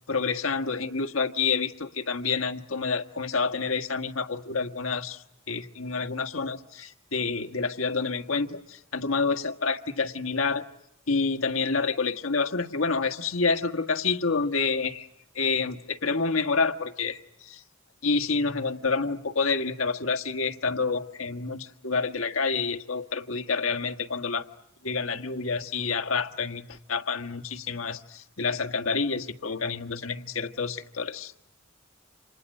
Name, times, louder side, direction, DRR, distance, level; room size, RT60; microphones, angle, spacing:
voice 1, 0.1-10.6 11.1-15.1 15.3-17.6 18.0-24.5 24.8-31.3, left 4 dB, 75° left, 7 dB, 1.6 m, -28 dB
30.0 x 27.5 x 6.6 m, 0.85 s
head